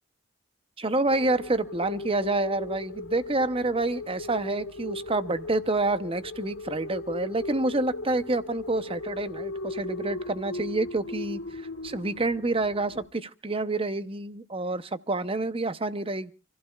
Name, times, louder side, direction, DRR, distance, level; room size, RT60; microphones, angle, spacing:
voice 1, 0.8-16.3, right 2 dB, 25° right, 12 dB, 0.8 m, -28 dB
sound 1, 1.1-13.1, left 2 dB, 85° left, 2.5 m, -38 dB
29.5 x 15.5 x 2.4 m, 0.34 s
head